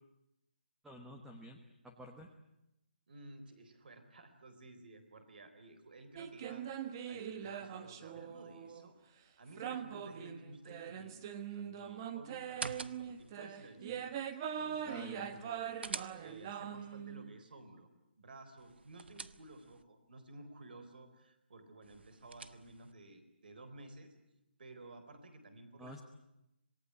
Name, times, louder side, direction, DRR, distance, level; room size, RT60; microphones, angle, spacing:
voice 1, 0.8-1.6 1.8-2.3 14.9-15.3 25.8-26.0, equal, 5° right, 3 dB, 1.2 m, -49 dB
voice 2, 3.1-6.7 7.1-11.2 11.5-14.1 14.4-15.7 16.2-17.9 18.2-24.1 24.6-26.0, right 2 dB, 60° right, 9 dB, 4.1 m, -54 dB
sound 1, 6.2-8.9 9.6-17.3, right 8 dB, 20° right, 1.2 m, -42 dB
sound 2, 12.4-13.3 15.3-16.6 18.6-19.8 21.8-22.9, right 4 dB, 80° right, 1.1 m, -46 dB
27.0 x 18.5 x 9.7 m, 0.87 s
hypercardioid pair, 170°, 6 cm